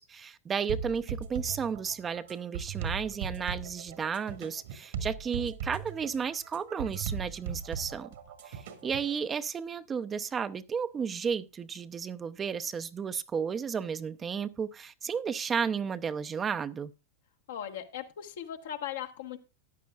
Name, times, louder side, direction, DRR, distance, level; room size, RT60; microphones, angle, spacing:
voice 1, 0.0-8.1 8.5-16.9, right 6 dB, 25° right, 0.7 m, -33 dB
sound 1, 0.7-9.1, right 7 dB, 65° right, 1.9 m, -38 dB
voice 2, 17.5-19.4, left 10 dB, 65° left, 1.5 m, -38 dB
14.0 x 10.5 x 2.4 m
figure-of-eight pair, 90°, 0 cm